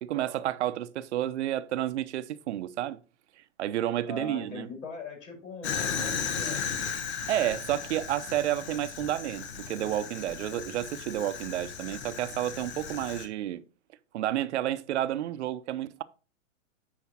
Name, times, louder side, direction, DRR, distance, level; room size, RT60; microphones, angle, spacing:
voice 1, 0.0-3.0 3.6-4.7 7.3-13.6 14.1-16.0, right 12 dB, 60° right, 0.7 m, -30 dB
voice 2, 4.0-6.8, left 3 dB, 80° left, 4.8 m, -41 dB
Fire, 5.6-13.3, left 6 dB, 60° left, 1.5 m, -36 dB
8.5 x 5.0 x 4.1 m
hypercardioid pair, 140°, 38 cm